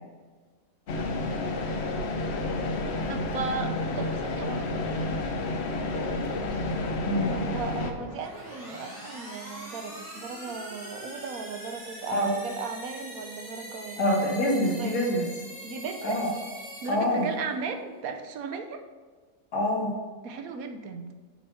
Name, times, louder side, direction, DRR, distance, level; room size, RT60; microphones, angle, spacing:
sound 1, 0.9-7.9, left 2 dB, 55° left, 0.9 m, -30 dB
voice 1, 3.1-4.9 7.2-14.0 14.7-15.0 15.6-16.3 16.8-18.8 20.2-21.1, right 5 dB, 70° right, 6 dB, 1.1 m, -36 dB
sound 2, 7.9-17.6, right 1 dB, 45° right, 2.6 m, -43 dB
voice 2, 14.0-15.2 16.0-16.3 16.9-17.3 19.5-19.9, left 1 dB, 85° left, -3 dB, 2.0 m, -25 dB
7.4 x 4.2 x 5.7 m, 1.4 s
omnidirectional pair, 1.6 m